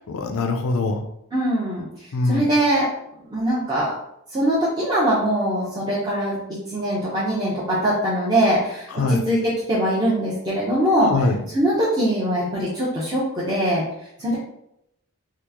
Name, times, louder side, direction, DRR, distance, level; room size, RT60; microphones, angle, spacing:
voice 1, 0.1-1.0 2.1-2.5 8.9-9.2 11.1-11.4, left 3 dB, 65° left, 6 dB, 0.4 m, -22 dB
voice 2, 1.3-2.9 3.3-3.9 4.3-6.4 6.7-11.1 11.5-13.8 14.2-14.4, right 1 dB, 20° right, -10 dB, 0.7 m, -22 dB
3.0 x 2.3 x 3.5 m, 0.79 s
head